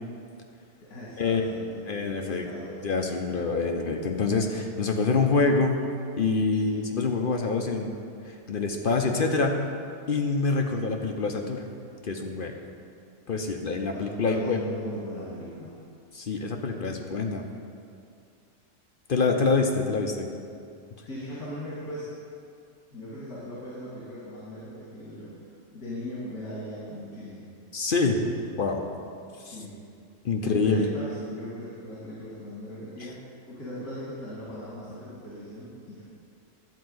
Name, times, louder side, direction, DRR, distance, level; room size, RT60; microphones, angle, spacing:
voice 1, 0.8-2.9 3.4-3.5 6.6-6.8 13.9-15.7 21.1-22.1 22.9-27.5 29.3-29.8 30.4-33.2 33.5-36.0, equal, 85° left, -9 dB, 2.6 m, -39 dB
voice 2, 1.9-2.5 2.8-5.8 6.2-7.9 8.3-9.6 10.1-11.6 12.0-12.5 13.3-14.6 16.1-17.4 19.1-20.3 27.7-28.2 28.6-28.8 29.4-29.6 30.2-30.8, left 4 dB, 50° left, 3 dB, 0.7 m, -26 dB
12.0 x 4.6 x 7.8 m, 2.4 s
omnidirectional pair, 1.5 m